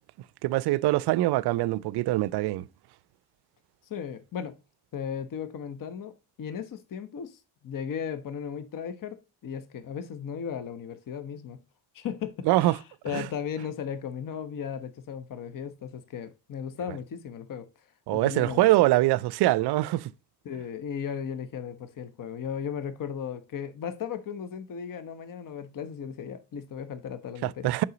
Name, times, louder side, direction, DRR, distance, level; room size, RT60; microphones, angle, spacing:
voice 1, 0.4-2.7 12.5-12.8 13.1-13.3 18.1-20.1 27.4-27.8, right 17 dB, 55° right, 0.5 m, -24 dB
voice 2, 3.9-4.6 4.9-7.4 7.6-11.6 11.9-17.7 18.1-18.7 20.4-27.7, left 7 dB, 40° left, 1.0 m, -36 dB
6.6 x 5.6 x 3.9 m
hypercardioid pair, 60°, 49 cm